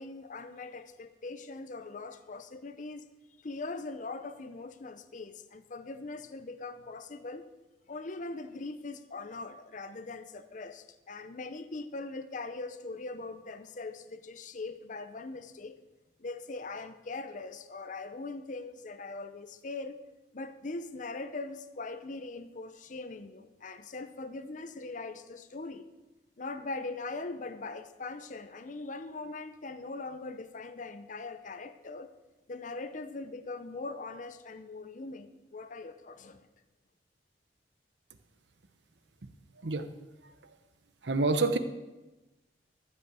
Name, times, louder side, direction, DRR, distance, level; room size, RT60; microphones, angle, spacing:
voice 1, 0.0-3.0 3.4-7.5 7.9-15.8 16.2-20.0 20.3-25.9 26.4-32.1 32.5-36.5, left 3 dB, 45° left, 11 dB, 0.7 m, -41 dB
voice 2, 41.0-41.6, right 3 dB, 90° right, 10 dB, 1.0 m, -27 dB
13.5 x 5.8 x 7.9 m, 1.1 s
head